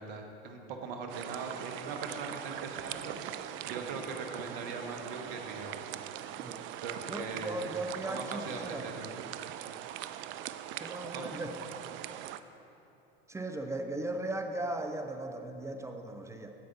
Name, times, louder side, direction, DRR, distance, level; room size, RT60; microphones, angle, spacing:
voice 1, 0.0-5.7 6.8-9.1 11.1-11.3, right 4 dB, 65° right, 4 dB, 1.2 m, -41 dB
sound 1, 1.1-12.4, right 11 dB, 40° right, 0.4 m, -41 dB
voice 2, 7.1-9.0 10.8-11.5 13.3-16.5, right 2 dB, 10° right, 6 dB, 0.7 m, -37 dB
15.0 x 5.1 x 4.1 m, 3.0 s
hypercardioid pair, 80°, 31 cm